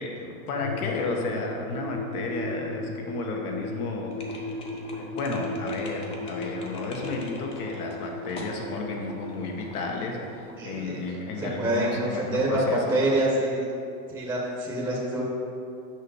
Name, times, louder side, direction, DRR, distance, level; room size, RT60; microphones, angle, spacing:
voice 1, 0.0-4.5 4.9-13.0, left 3 dB, 80° left, 1 dB, 1.4 m, -33 dB
sound 1, 0.6-11.4 11.7-11.8, left 2 dB, 45° left, 0.8 m, -37 dB
sound 2, 4.1-11.0, left 2 dB, 15° left, 0.3 m, -45 dB
voice 2, 10.6-13.7 14.1-15.3, right 1 dB, 5° right, -4 dB, 0.8 m, -27 dB
6.3 x 5.4 x 4.8 m, 2.5 s
supercardioid pair, 145°, 43 cm